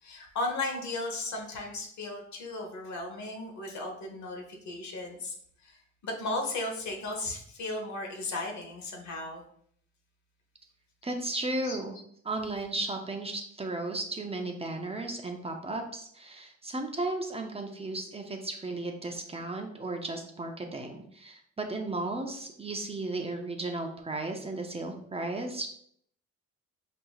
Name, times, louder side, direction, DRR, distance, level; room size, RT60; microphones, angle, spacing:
voice 1, 0.0-5.3 5.6-9.4 11.6-11.8, left 2 dB, 65° left, 2 dB, 1.1 m, -35 dB
voice 2, 11.0-11.9 12.2-25.7, right 2 dB, 20° right, 3 dB, 0.6 m, -35 dB
5.2 x 2.8 x 2.3 m, 0.65 s
cardioid pair, 90°, 30 cm